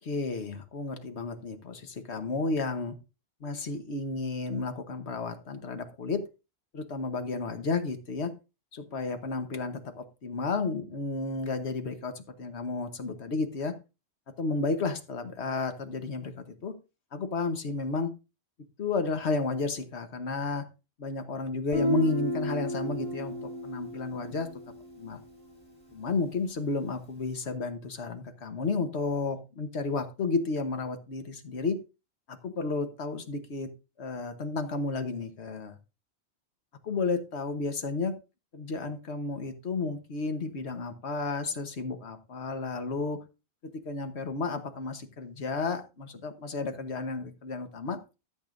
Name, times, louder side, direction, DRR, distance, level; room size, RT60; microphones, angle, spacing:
voice 1, 0.0-2.9 3.4-6.2 6.7-8.3 8.7-13.7 14.4-16.3 16.6-16.7 17.1-18.1 18.8-20.6 21.0-24.5 25.0-25.2 25.9-31.8 32.3-33.7 34.0-35.7 36.9-38.1 38.5-43.2 43.8-48.0, left 3 dB, 80° left, 8 dB, 1.4 m, -32 dB
Guitar, 21.7-25.4, left 1 dB, 20° right, 4.7 m, -32 dB
13.5 x 7.9 x 2.6 m, 0.29 s
omnidirectional pair, 1.1 m